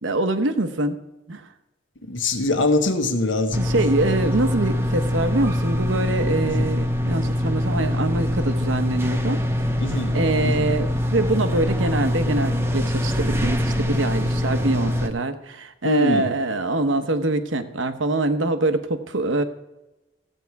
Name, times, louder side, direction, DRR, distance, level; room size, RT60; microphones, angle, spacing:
voice 1, 0.0-1.0 1.3-1.4 3.6-9.4 9.8-19.4, right 2 dB, 80° right, 9 dB, 0.9 m, -24 dB
voice 2, 2.1-3.6 6.5-6.7 9.8-10.2 10.4-10.7 15.8-16.3, left 2 dB, 75° left, 5 dB, 1.4 m, -23 dB
sound 1, 3.5-15.1, left 1 dB, 10° right, 0.7 m, -23 dB
14.5 x 8.3 x 4.7 m, 0.99 s
head